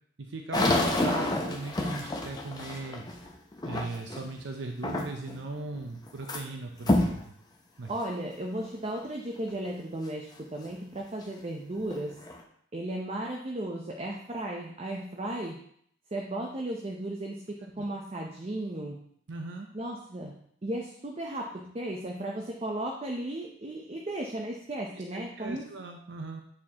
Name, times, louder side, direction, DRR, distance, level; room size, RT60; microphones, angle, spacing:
voice 1, 0.2-3.0 3.6-7.3 7.8-7.9 17.6-17.8 19.3-19.7 25.1-26.4, right 2 dB, 80° right, 3 dB, 0.6 m, -38 dB
sound 1, 0.5-4.3 4.8-5.4 5.7-6.4 6.8-7.2 7.8-7.9 8.6-8.7 11.2-11.3 11.8-12.4, left 1 dB, 20° left, 0.7 m, -29 dB
voice 2, 7.9-12.2 12.7-15.6 16.1-19.0 19.7-20.4 20.6-25.7, right 1 dB, 35° right, 0 dB, 0.6 m, -35 dB
8.5 x 4.3 x 2.8 m, 0.66 s
head